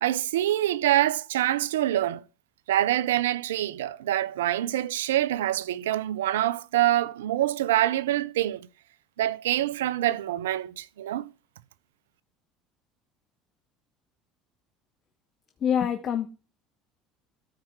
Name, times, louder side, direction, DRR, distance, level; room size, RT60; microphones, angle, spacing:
voice 1, 0.0-2.2 2.7-8.7 9.2-11.3, right 13 dB, 90° right, 0.5 m, -25 dB
voice 2, 15.6-16.3, left 8 dB, 45° left, 1.1 m, -25 dB
13.5 x 4.7 x 4.6 m
hypercardioid pair, 80°, 0 cm